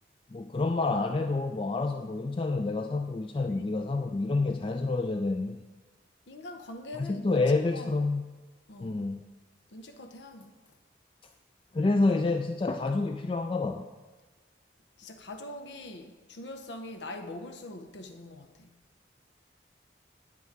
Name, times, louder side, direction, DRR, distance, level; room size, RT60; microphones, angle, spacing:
voice 1, 0.3-5.6 6.9-8.2 8.8-9.2 11.7-13.8, left 3 dB, 30° left, 0.3 m, -28 dB
voice 2, 6.3-7.4 7.7-8.0 8.7-9.0 9.7-10.7 15.0-18.8, left 1 dB, 90° left, 0.7 m, -43 dB
9.1 x 8.2 x 4.6 m
head